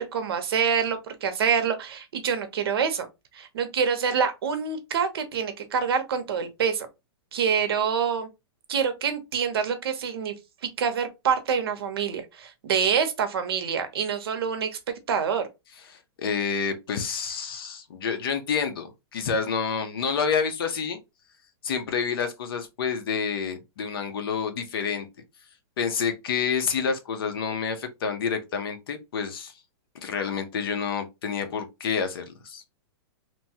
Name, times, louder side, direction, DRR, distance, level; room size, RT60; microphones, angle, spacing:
voice 1, 0.0-3.1 3.3-6.9 7.3-8.3 8.7-10.3 10.6-14.8 15.1-15.5, right 7 dB, 70° right, 0.7 m, -26 dB
voice 2, 16.2-21.0 21.6-25.1 25.8-29.5 30.0-32.6, left 6 dB, 60° left, 0.7 m, -28 dB
2.9 x 2.2 x 2.7 m
supercardioid pair, 175°, 13 cm